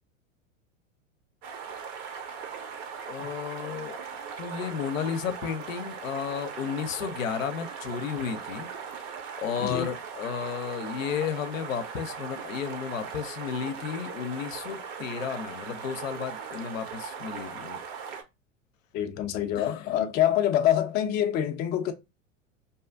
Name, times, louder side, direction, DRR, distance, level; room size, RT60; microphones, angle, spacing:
sound 1, 1.4-18.2, right 6 dB, 45° right, 0.7 m, -39 dB
voice 1, 3.1-4.0 4.4-8.7 9.4-17.8 19.6-20.0, left 7 dB, 80° left, 0.5 m, -33 dB
voice 2, 18.9-21.9, left 11 dB, 25° left, 0.4 m, -25 dB
2.7 x 2.4 x 2.3 m
hypercardioid pair, 90°, 38 cm